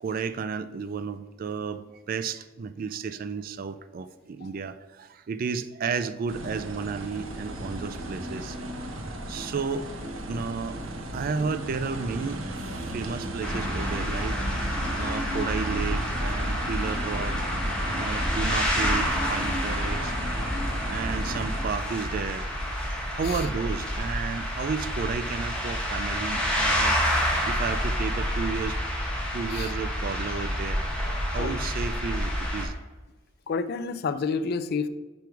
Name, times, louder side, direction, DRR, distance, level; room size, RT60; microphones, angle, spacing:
voice 1, 0.0-8.6 9.3-9.9 10.3-10.8 11.1-12.4 12.9-14.4 14.9-17.4 17.9-20.1 20.9-22.7 23.1-27.0 27.5-28.8 29.3-30.8 31.3-32.7, right 5 dB, 45° right, 12 dB, 0.3 m, -32 dB
sound 1, 6.3-21.6, right 1 dB, 85° right, 0.8 m, -35 dB
sound 2, 13.4-32.7, equal, 5° left, 1.0 m, -28 dB
voice 2, 33.5-34.9, left 4 dB, 50° left, 12 dB, 0.3 m, -29 dB
5.3 x 4.6 x 4.5 m, 1.2 s
head